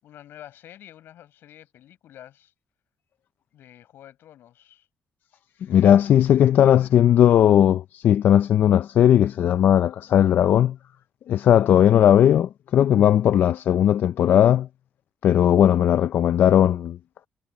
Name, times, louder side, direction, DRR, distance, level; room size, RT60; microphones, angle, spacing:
voice 1, 0.0-2.5 3.5-4.9 6.4-6.9, left 12 dB, 85° left, 7.8 m, -48 dB
voice 2, 5.6-10.8 11.3-14.7 15.2-17.0, left 10 dB, 65° left, 0.4 m, -17 dB
cardioid pair, 145°, 4 cm